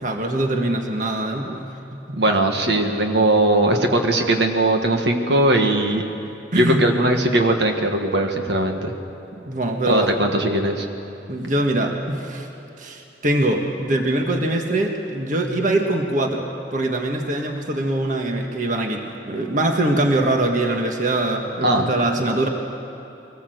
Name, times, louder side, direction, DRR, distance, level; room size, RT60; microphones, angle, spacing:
voice 1, 0.0-1.6 1.9-2.2 6.5-6.9 9.3-10.1 11.3-12.5 12.8-22.5, right 1 dB, 45° right, 2 dB, 1.6 m, -23 dB
voice 2, 2.1-6.0 6.5-8.9 9.9-10.9 21.6-21.9, right 1 dB, 70° right, 3 dB, 1.8 m, -19 dB
23.5 x 19.0 x 8.0 m, 2.8 s
head